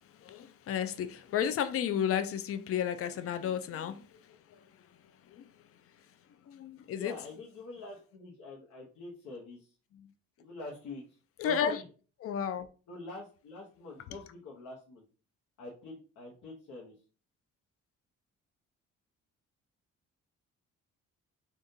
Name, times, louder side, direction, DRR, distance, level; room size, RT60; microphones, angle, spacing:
voice 1, 0.2-4.1 4.5-4.6 5.3-5.4 6.5-7.1 11.4-11.8 12.2-12.7, left 8 dB, 50° left, 0.5 m, -32 dB
voice 2, 6.8-9.7 10.4-11.8 12.9-15.0 15.6-17.0, left 2 dB, 80° left, 1.0 m, -45 dB
3.6 x 2.5 x 2.7 m
cardioid pair, 90°, 30 cm